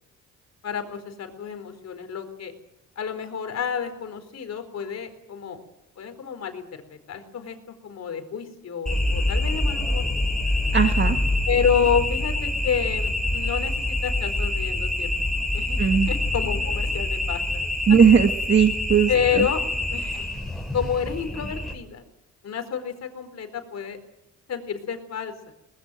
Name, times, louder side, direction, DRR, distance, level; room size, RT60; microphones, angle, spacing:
voice 1, 0.6-2.5 3.0-5.6 6.0-7.6 7.8-10.0 11.5-15.1 15.5-15.8 16.1-17.4 19.1-19.6 19.9-20.2 20.7-22.0 22.4-24.0 24.5-25.5, left 7 dB, 60° left, 8 dB, 4.4 m, -29 dB
sound 1, 8.9-21.7, left 2 dB, ahead, 6.1 m, -26 dB
voice 2, 10.7-11.2 15.8-16.1 17.9-19.5, right 7 dB, 40° right, 6 dB, 1.6 m, -18 dB
21.5 x 20.0 x 9.2 m, 0.87 s
cardioid pair, 90°, 30 cm